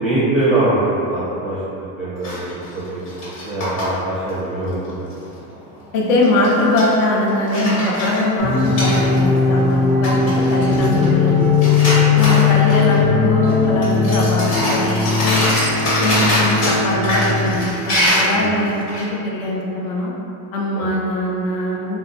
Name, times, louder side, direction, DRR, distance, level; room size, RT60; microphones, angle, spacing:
voice 1, 0.0-3.0 3.4-5.1 11.9-12.2 18.3-18.5 20.7-20.9, right 2 dB, ahead, -14 dB, 0.4 m, -22 dB
sound 1, 2.2-3.8 4.3-4.4 4.7-5.2 6.2-6.9 7.3-9.4 9.7-9.8 10.0-11.3 11.5-13.0 13.4-13.5 13.8-19.0, equal, 85° left, 1.4 m, -23 dB
voice 2, 5.9-11.5 12.2-15.4 16.0-20.1 20.5-22.0, left 1 dB, 60° left, -3 dB, 0.5 m, -21 dB
sound 2, 8.4-17.6, left 5 dB, 30° left, 0.9 m, -18 dB
2.7 x 2.1 x 2.5 m, 2.9 s
supercardioid pair, 155°, 43 cm